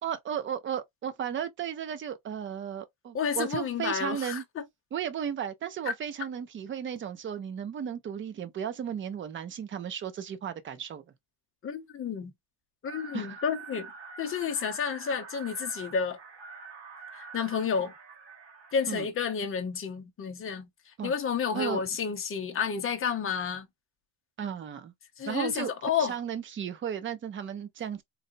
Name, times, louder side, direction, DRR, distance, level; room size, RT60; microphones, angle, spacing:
voice 1, 0.0-4.4 4.9-11.0 13.1-13.4 18.9-19.1 21.0-21.1 21.5-21.8 24.4-24.9 25.3-25.7 26.0-28.0, right 8 dB, 25° right, 0.4 m, -34 dB
voice 2, 3.1-4.6 11.6-12.3 12.8-13.9 14.2-16.2 17.1-17.9 18.7-23.7 25.2-26.2, left 6 dB, 25° left, 0.8 m, -31 dB
sound 1, 12.9-19.1, right 5 dB, 70° right, 1.7 m, -46 dB
4.0 x 2.1 x 2.6 m
cardioid pair, 155°, 48 cm